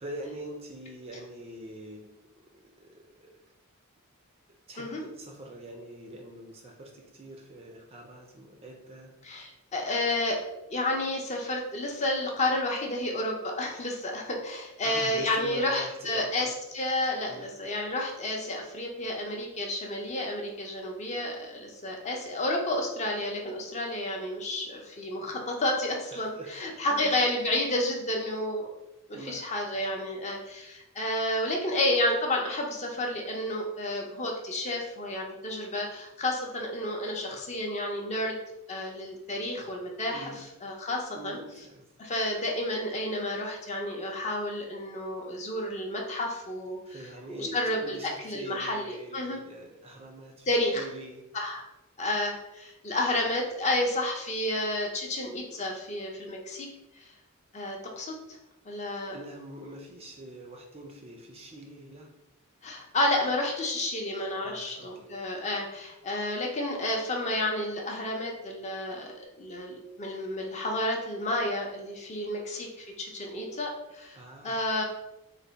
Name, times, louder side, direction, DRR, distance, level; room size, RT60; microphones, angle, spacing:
voice 1, 0.0-2.1 2.5-3.3 4.7-9.1 14.8-16.5 17.3-17.5 26.1-26.6 26.9-27.2 29.1-29.5 40.1-40.5 41.1-41.9 46.9-51.2 59.1-62.1 64.4-65.1 74.1-74.6, right 1 dB, 25° right, 2 dB, 0.4 m, -44 dB
voice 2, 9.2-10.4 10.7-28.7 29.1-38.4 38.7-40.3 40.6-41.4 42.0-46.8 47.3-48.0 48.2-49.4 50.5-50.8 51.3-51.6 52.0-56.7 57.0-57.1 57.5-58.2 58.7-59.2 62.6-74.2 74.4-74.8, left 1 dB, 30° left, 0 dB, 0.5 m, -31 dB
3.3 x 2.1 x 3.9 m, 0.93 s
head